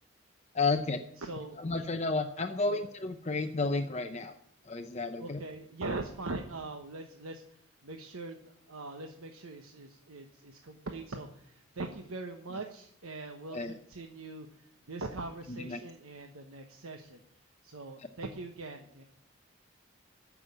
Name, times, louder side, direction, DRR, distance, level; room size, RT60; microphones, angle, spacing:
voice 1, 0.5-1.0 1.6-4.4 4.6-5.4 13.5-13.7 15.5-15.8, left 3 dB, 30° left, 6 dB, 0.7 m, -32 dB
voice 2, 1.2-1.6 2.7-2.8 5.2-7.4 7.8-17.2 17.6-19.0, right 2 dB, 90° right, 4 dB, 1.2 m, -42 dB
14.0 x 6.3 x 9.6 m, 0.67 s
head